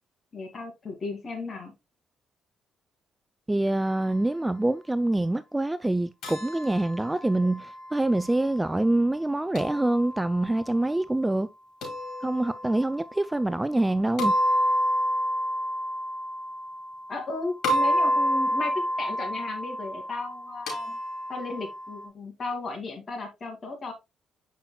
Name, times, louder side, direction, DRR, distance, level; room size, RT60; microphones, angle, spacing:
voice 1, 0.3-1.7 17.1-21.0 21.3-23.9, left 3 dB, 40° left, 2.5 m, -35 dB
voice 2, 3.5-11.5 12.2-14.3, right 1 dB, 10° right, 0.3 m, -25 dB
sound 1, 6.2-8.3 9.5-10.5 11.8-13.0 14.2-17.3 17.6-22.0, equal, 75° left, 3.3 m, -29 dB
7.4 x 5.7 x 2.3 m
cardioid pair, 90°, 0 cm